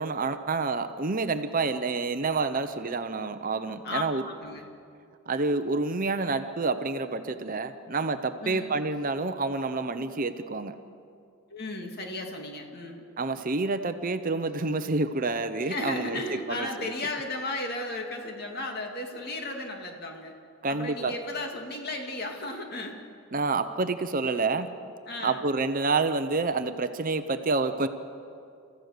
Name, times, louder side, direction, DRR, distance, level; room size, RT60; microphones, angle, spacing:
voice 1, 0.0-4.2 5.3-10.8 13.2-16.7 20.6-21.2 23.3-24.7 25.2-27.9, right 3 dB, 40° right, 9 dB, 0.7 m, -28 dB
voice 2, 3.8-4.7 8.4-8.8 11.5-13.0 15.6-20.3 20.7-23.0 25.1-25.4, left 2 dB, 45° left, 3 dB, 2.4 m, -35 dB
30.0 x 15.0 x 6.7 m, 2.5 s
head